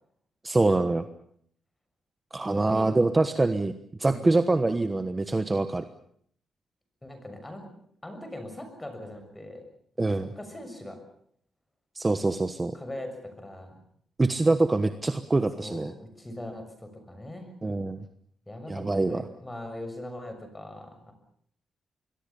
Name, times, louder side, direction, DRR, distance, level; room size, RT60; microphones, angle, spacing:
voice 1, 0.4-1.0 2.3-3.7 4.0-5.8 10.0-10.3 11.9-12.7 14.2-15.9 17.6-18.0 18.7-19.2, right 2 dB, 20° right, 9 dB, 1.2 m, -24 dB
voice 2, 2.5-2.9 4.0-4.3 7.0-7.6 8.0-9.6 10.0-11.0 12.7-13.8 15.6-17.5 18.5-21.1, left 1 dB, 10° left, 7 dB, 6.7 m, -41 dB
26.5 x 22.0 x 7.1 m, 0.66 s
cardioid pair, 125°, 0 cm